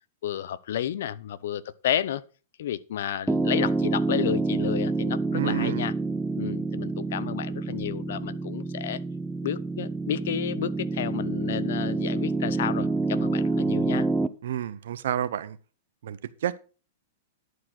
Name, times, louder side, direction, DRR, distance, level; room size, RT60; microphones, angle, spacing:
voice 1, 0.2-2.2 2.6-5.9 6.4-9.0 9.4-14.1, left 10 dB, 70° left, 0.7 m, -31 dB
Piano, 3.3-14.3, right 3 dB, 5° right, 0.6 m, -28 dB
voice 2, 5.3-5.9 14.4-15.6 16.0-16.6, right 11 dB, 75° right, 0.8 m, -30 dB
11.0 x 4.8 x 5.9 m
hypercardioid pair, 145°, 0 cm